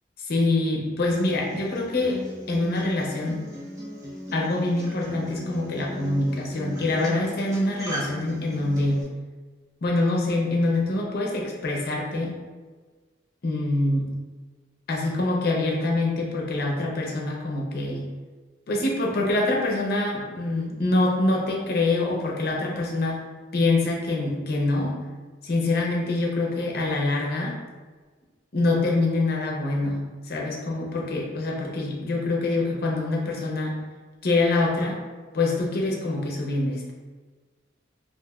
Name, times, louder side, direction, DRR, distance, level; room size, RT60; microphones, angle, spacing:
voice 1, 0.3-3.4 4.3-9.0 9.8-12.3 13.4-14.1 14.9-18.1 18.7-23.2 23.5-25.0 25.4-27.6 28.5-33.8 34.2-35.0 35.3-36.9, left 2 dB, 55° left, -1 dB, 0.6 m, -25 dB
Acoustic guitar, 1.0-9.0, right 1 dB, 20° right, 0.5 m, -37 dB
2.9 x 2.5 x 2.3 m, 1.4 s
head